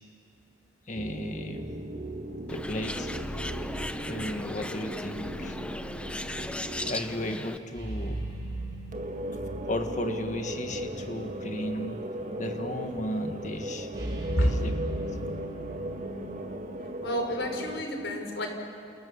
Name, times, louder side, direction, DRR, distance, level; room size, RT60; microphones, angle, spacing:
voice 1, 0.9-1.7 2.5-3.1 4.1-5.6 6.8-8.3 9.7-12.0 12.4-13.9 14.2-15.0, left 1 dB, 40° left, 6 dB, 1.8 m, -35 dB
sound 1, 0.9-6.9 8.9-17.8, right 1 dB, 40° right, 1.8 m, -37 dB
Bird, 2.5-7.6, left 1 dB, 5° left, 0.7 m, -37 dB
sound 2, 7.7-11.0 11.3-11.4 13.9-16.8, right 2 dB, 20° right, 7.2 m, -38 dB
voice 2, 17.0-18.5, equal, 80° left, 4 dB, 4.3 m, -28 dB
29.0 x 28.5 x 7.2 m, 2.6 s
head